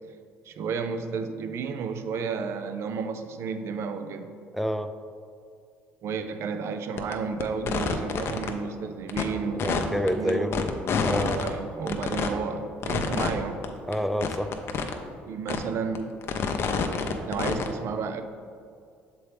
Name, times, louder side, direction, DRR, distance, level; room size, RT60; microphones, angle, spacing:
voice 1, 0.5-4.3 6.0-10.5 11.1-13.6 15.3-16.1 17.3-18.2, right 5 dB, 60° right, 8 dB, 0.5 m, -32 dB
voice 2, 4.5-4.9 9.5-10.7 11.1-11.4 13.9-14.5, equal, ahead, 9 dB, 0.4 m, -28 dB
sound 1, 7.0-7.1 7.4-8.5 9.1-9.2 9.6-11.5 11.9-12.3 12.8-13.3 13.6-13.7 13.9-14.0 14.2-14.9 15.5-15.6 16.0-17.7, left 6 dB, 55° left, 0.6 m, -27 dB
6.6 x 4.2 x 3.4 m, 2.3 s
hypercardioid pair, 60°, 5 cm